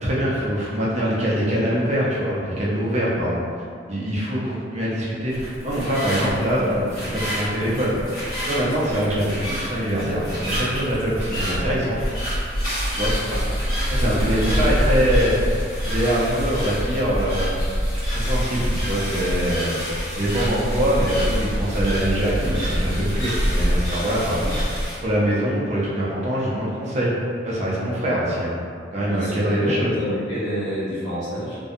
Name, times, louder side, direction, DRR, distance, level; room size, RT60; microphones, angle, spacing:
voice 1, 0.0-3.4 3.9-8.0 8.5-12.1 13.0-13.1 13.9-15.6 15.9-17.6 18.1-19.7 20.1-24.6 25.0-27.2 27.4-28.6 28.9-29.9, equal, 35° right, -6 dB, 0.5 m, -23 dB
sound 1, 5.3-25.0, equal, 55° left, 1.2 m, -26 dB
voice 2, 29.1-31.6, equal, 80° left, -11 dB, 1.3 m, -28 dB
2.6 x 2.1 x 2.4 m, 2.2 s
head